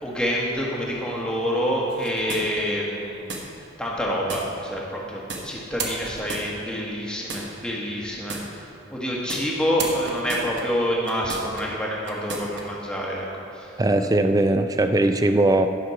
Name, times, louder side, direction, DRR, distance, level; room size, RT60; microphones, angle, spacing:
voice 1, 0.0-3.3 3.8-13.7, equal, 5° left, -4 dB, 1.4 m, -27 dB
sound 1, 1.9-2.8 3.3-3.4 4.3-4.4 5.3-5.4 5.8-6.8 7.3-7.4 8.3-8.4 9.3-9.4 9.8-11.6 12.0-12.6, right 4 dB, 65° right, 1.2 m, -33 dB
voice 2, 13.8-15.7, right 2 dB, 20° right, 8 dB, 0.3 m, -19 dB
11.0 x 5.7 x 5.8 m, 2.6 s
head